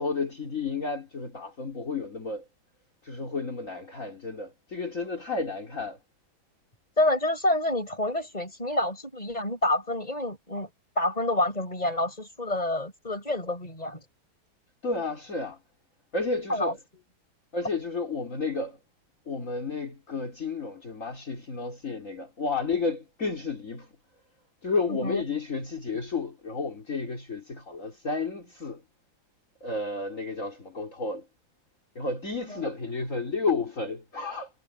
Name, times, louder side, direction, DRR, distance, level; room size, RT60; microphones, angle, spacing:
voice 1, 0.0-2.4 3.0-6.0 14.8-15.6 16.1-16.8 17.5-18.8 19.3-23.9 24.6-28.8 29.6-31.3 32.0-34.5, left 4 dB, 40° left, 4.0 m, -31 dB
voice 2, 7.0-10.7 11.0-14.0 16.5-17.0 24.9-25.2 32.5-32.6, left 1 dB, 20° left, 7.1 m, -28 dB
omnidirectional pair, 2.1 m